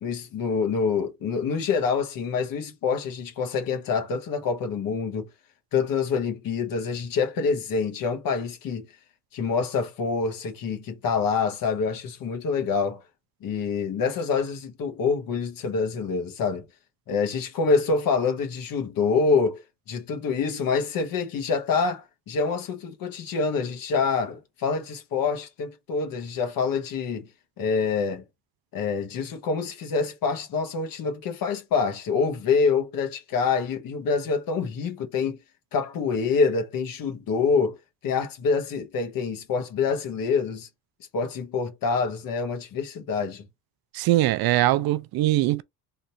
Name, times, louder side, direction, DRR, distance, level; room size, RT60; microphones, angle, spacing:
voice 1, 0.0-5.3 5.7-8.9 9.3-13.0 13.4-16.6 17.1-19.6 19.9-27.3 27.6-28.2 28.7-35.4 35.7-37.8 38.0-40.7 41.1-43.4, left 5 dB, 60° left, 1.3 m, -26 dB
voice 2, 43.9-45.6, right 16 dB, 65° right, 0.5 m, -21 dB
3.8 x 2.6 x 4.4 m
cardioid pair, 140°, 39 cm